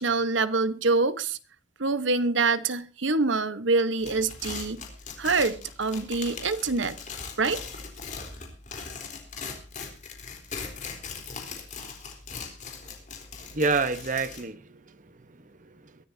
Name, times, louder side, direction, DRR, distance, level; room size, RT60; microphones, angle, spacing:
voice 1, 0.0-1.4 1.8-4.8 5.2-7.0 7.4-7.6, right 3 dB, 85° right, 1.2 m, -25 dB
sound 1, 4.0-14.4, left 5 dB, 40° left, 3.8 m, -40 dB
voice 2, 13.4-16.0, right 4 dB, 45° right, 1.2 m, -30 dB
22.5 x 13.0 x 2.8 m
head